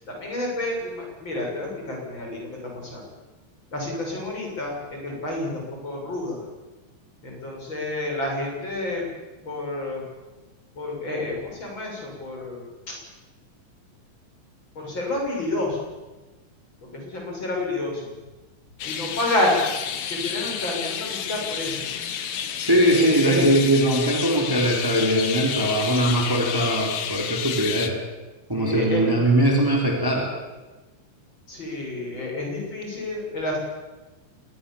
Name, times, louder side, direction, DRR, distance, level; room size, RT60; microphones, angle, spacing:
voice 1, 0.1-3.0 3.7-6.5 7.2-9.1 9.4-10.0 10.8-12.9 14.8-15.8 16.8-18.1 18.8-19.6 20.1-21.9 22.9-23.4 28.5-29.1 31.5-33.6, left 2 dB, 40° left, -1 dB, 7.6 m, -29 dB
sound 1, 18.8-27.9, left 8 dB, 80° left, 2.9 m, -30 dB
voice 2, 22.6-28.0 28.5-30.3, right 1 dB, 5° right, 0 dB, 3.9 m, -21 dB
26.5 x 20.5 x 7.3 m, 1.1 s
omnidirectional pair, 3.4 m